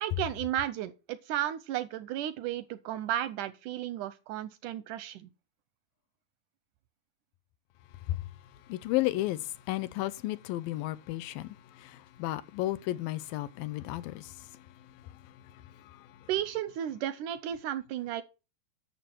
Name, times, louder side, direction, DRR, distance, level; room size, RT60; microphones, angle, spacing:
voice 1, 0.0-5.3 16.3-18.2, right 11 dB, 80° right, 1.9 m, -34 dB
voice 2, 8.7-14.5 15.8-16.1, left 16 dB, 80° left, 2.3 m, -33 dB
11.5 x 6.7 x 4.5 m
omnidirectional pair, 4.2 m